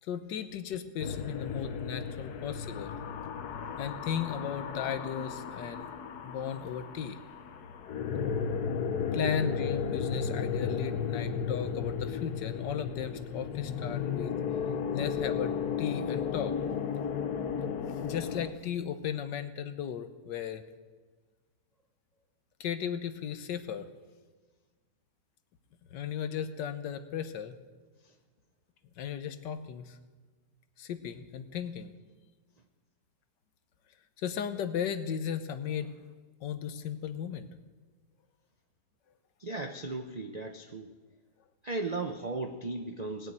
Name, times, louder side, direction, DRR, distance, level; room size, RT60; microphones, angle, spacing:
voice 1, 0.0-3.0 3.8-5.9 6.2-7.2 9.1-14.3 14.9-15.5 15.8-16.5 17.9-20.6 22.6-23.9 25.9-27.6 29.0-30.0 30.8-31.9 34.2-35.9 36.4-37.5, left 8 dB, 90° left, 10 dB, 1.5 m, -36 dB
sound 1, 1.0-18.5, left 7 dB, 70° left, 1.4 m, -34 dB
voice 2, 39.4-40.9 41.6-43.3, right 3 dB, 65° right, 5 dB, 0.4 m, -36 dB
19.0 x 6.5 x 9.1 m, 1.4 s
omnidirectional pair, 1.8 m